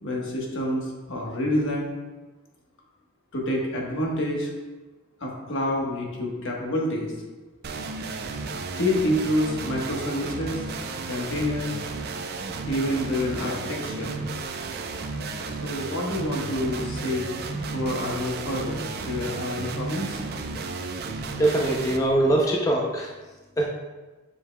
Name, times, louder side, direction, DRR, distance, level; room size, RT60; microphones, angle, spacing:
voice 1, 0.0-1.9 3.3-4.5 5.2-7.1 8.7-10.6 11.1-11.7 12.6-14.2 15.4-20.2, left 1 dB, 60° left, -2 dB, 1.2 m, -28 dB
sound 1, 7.6-22.0, right 3 dB, 50° right, 0.5 m, -33 dB
voice 2, 21.4-23.1 23.6-23.7, right 1 dB, 15° left, -2 dB, 0.5 m, -22 dB
7.7 x 5.4 x 2.2 m, 1.2 s
head